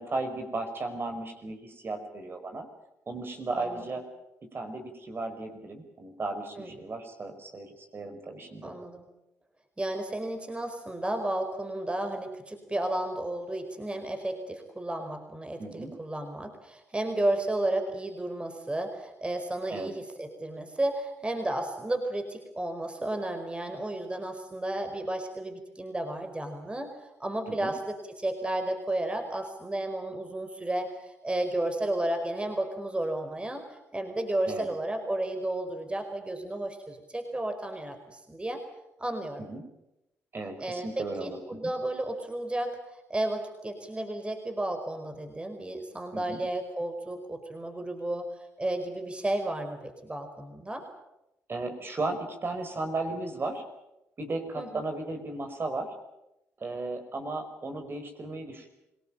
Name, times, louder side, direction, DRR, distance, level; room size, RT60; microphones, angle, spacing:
voice 1, 0.0-2.7 3.1-4.0 4.5-8.7 15.6-15.9 19.7-19.9 27.5-27.7 34.5-34.7 39.4-39.6 40.3-41.6 46.1-46.4 51.5-53.6 54.2-55.9 56.6-58.7, right 2 dB, 40° right, 6 dB, 5.4 m, -35 dB
voice 2, 8.6-9.1 9.8-26.9 27.2-33.6 33.9-38.6 39.0-39.4 40.6-42.8 43.1-48.3 48.6-50.8 54.6-54.8, right 1 dB, 20° right, 6 dB, 4.7 m, -32 dB
26.0 x 18.5 x 9.0 m, 0.90 s
supercardioid pair, 55°, 6 cm